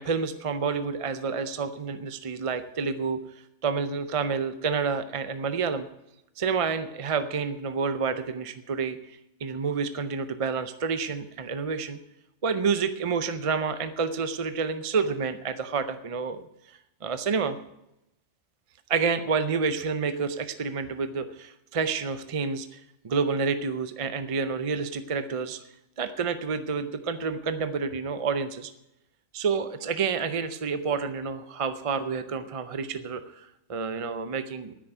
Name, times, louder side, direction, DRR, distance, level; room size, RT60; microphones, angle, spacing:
voice 1, 0.0-3.2 3.6-5.9 6.4-9.0 9.4-12.0 12.4-16.4 17.0-17.6 18.9-25.6 26.0-28.7 29.3-34.7, right 5 dB, 40° right, 10 dB, 0.5 m, -29 dB
9.7 x 9.6 x 8.0 m, 0.87 s
omnidirectional pair, 1.3 m